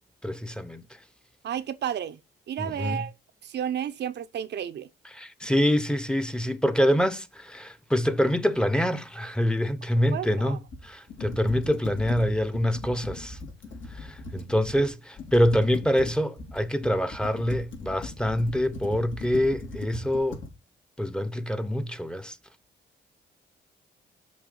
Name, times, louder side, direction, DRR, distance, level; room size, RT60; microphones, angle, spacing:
voice 1, 0.2-0.8 2.6-3.0 5.1-13.4 13.9-20.4 21.0-22.4, equal, 5° left, 0.8 m, -25 dB
voice 2, 1.4-2.2 2.5-3.1 3.4-4.9 10.1-10.6, right 9 dB, 60° right, 0.7 m, -32 dB
Computer keyboard, 10.7-14.9 15.2-20.5, left 3 dB, 75° left, 3.1 m, -40 dB
6.3 x 4.7 x 6.7 m
cardioid pair, 90°, 20 cm